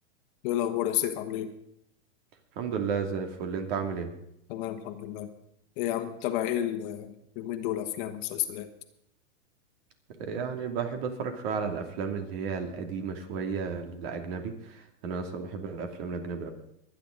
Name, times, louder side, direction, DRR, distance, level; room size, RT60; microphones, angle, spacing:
voice 1, 0.4-1.5 4.5-5.3 5.8-8.7, left 12 dB, 45° left, 8 dB, 1.4 m, -31 dB
voice 2, 2.6-4.1 10.2-16.5, right 5 dB, 55° right, 5 dB, 2.7 m, -33 dB
23.5 x 9.8 x 3.9 m, 0.78 s
hypercardioid pair, 140°, 37 cm